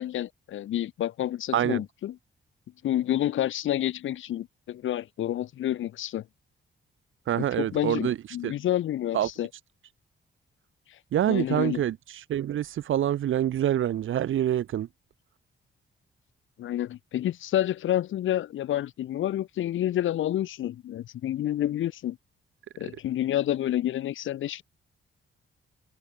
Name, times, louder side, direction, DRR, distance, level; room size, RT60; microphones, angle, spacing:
voice 1, 0.0-2.1 2.8-6.2 7.4-9.5 11.3-11.8 16.6-22.2 22.8-24.6, left 12 dB, 75° left, 0.8 m, -29 dB
voice 2, 7.3-8.5 9.1-9.6 11.1-14.9, right 11 dB, 75° right, 1.8 m, -26 dB
wide cardioid pair, 150°, 20 cm